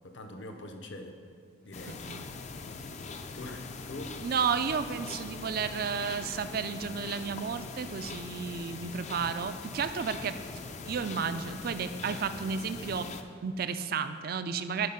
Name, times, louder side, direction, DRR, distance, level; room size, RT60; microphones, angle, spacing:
voice 1, 0.0-1.2 1.6-2.0 3.3-4.2, left 2 dB, 60° left, 5 dB, 0.8 m, -43 dB
sound 1, 1.7-13.2, left 4 dB, 35° left, 0.4 m, -42 dB
voice 2, 1.9-2.3 4.2-10.4 10.8-13.1 13.4-14.9, right 6 dB, 45° right, 11 dB, 0.4 m, -32 dB
11.0 x 5.2 x 5.7 m, 2.3 s
head